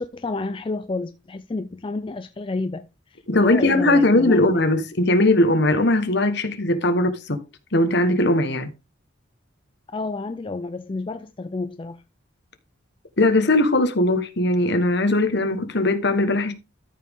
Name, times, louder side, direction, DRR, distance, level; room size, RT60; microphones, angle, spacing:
voice 1, 0.0-4.4 9.9-12.0, left 3 dB, 25° left, 0.4 m, -30 dB
voice 2, 3.3-7.4 7.7-8.7 13.2-16.5, left 2 dB, 55° left, 1.3 m, -19 dB
13.5 x 5.2 x 3.6 m
head